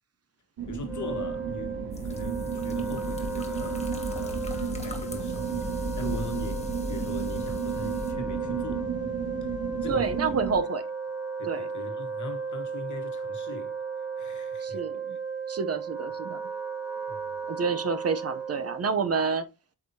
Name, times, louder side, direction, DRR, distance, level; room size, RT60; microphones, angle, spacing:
sound 1, 0.6-10.6, right 5 dB, 85° right, 1.7 m, -33 dB
voice 1, 0.7-8.9 9.4-9.5 9.8-10.4 11.4-14.8 15.1-15.2 17.1-17.4, left 3 dB, 50° left, 1.4 m, -41 dB
Wind instrument woodwind instrument, 0.8-18.9, right 4 dB, 5° right, 1.4 m, -35 dB
sound 2, 1.9-8.1, left 3 dB, 20° left, 1.1 m, -48 dB
voice 2, 9.9-10.8 11.4-11.7 14.6-15.2 15.5-16.4 17.5-19.5, right 5 dB, 40° right, 0.7 m, -28 dB
8.2 x 4.8 x 2.7 m
wide cardioid pair, 175°, 37 cm